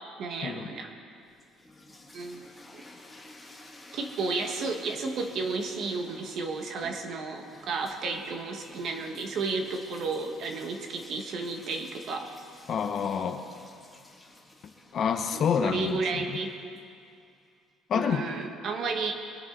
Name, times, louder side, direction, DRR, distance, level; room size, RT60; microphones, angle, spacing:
voice 1, 0.2-0.9 2.1-2.4 2.7-2.8 3.9-12.3 15.3-16.5 17.9-19.1, right 4 dB, 45° right, 4 dB, 1.4 m, -32 dB
sound 1, 1.2-17.2, left 2 dB, 5° left, 1.5 m, -52 dB
voice 2, 12.7-13.4 14.9-16.3 17.9-18.3, left 7 dB, 40° left, 7 dB, 0.7 m, -28 dB
22.0 x 10.5 x 3.9 m, 2.3 s
cardioid pair, 160°, 0 cm